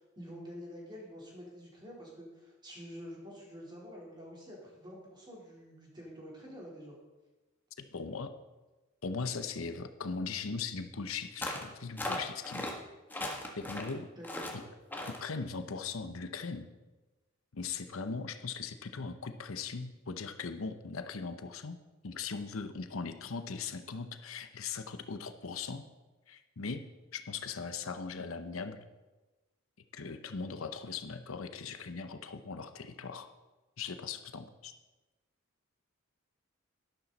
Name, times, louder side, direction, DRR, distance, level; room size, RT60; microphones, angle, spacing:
voice 1, 0.2-7.0 14.2-14.5, equal, 20° right, -4 dB, 3.8 m, -47 dB
voice 2, 7.8-8.3 9.0-12.8 13.5-14.1 15.1-16.7 17.5-21.8 22.0-25.9 26.3-26.8 27.1-28.8 29.9-33.3 33.8-34.7, left 5 dB, 80° left, 9 dB, 0.8 m, -39 dB
sound 1, 11.4-11.7 12.0-12.7 13.1-13.9 14.2-14.6 14.9-15.2, left 1 dB, 10° left, 1.4 m, -37 dB
12.0 x 12.0 x 4.1 m, 1.1 s
head